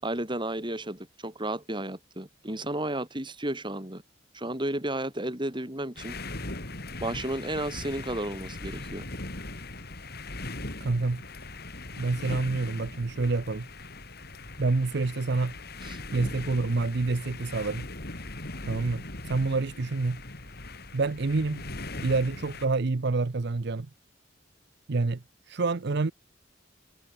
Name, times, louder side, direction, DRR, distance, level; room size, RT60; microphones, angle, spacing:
voice 1, 0.0-4.0 4.3-6.2 7.0-9.1 15.8-16.0, right 1 dB, 25° right, 6.2 m, -33 dB
sound 1, 6.0-22.7, left 2 dB, 55° left, 5.3 m, -40 dB
voice 2, 10.8-11.2 11.9-13.7 14.6-15.5 16.1-17.8 18.6-20.2 20.9-21.6 22.0-23.9 24.9-26.1, right 3 dB, 60° right, 0.7 m, -27 dB
head